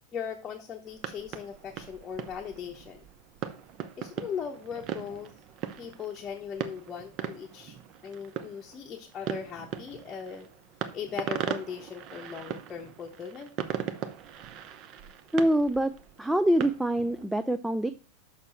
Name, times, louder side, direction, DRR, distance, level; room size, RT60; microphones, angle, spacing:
voice 1, 0.1-3.0 4.0-5.3 5.8-7.8 8.0-10.5 10.9-13.5, left 7 dB, 25° left, 1 dB, 0.9 m, -39 dB
sound 1, 0.9-17.3, right 9 dB, 35° right, 0.7 m, -39 dB
voice 2, 15.3-15.9 16.2-17.9, right 1 dB, 5° right, 12 dB, 0.3 m, -25 dB
6.7 x 5.9 x 4.3 m, 0.34 s
figure-of-eight pair, 90°, 0 cm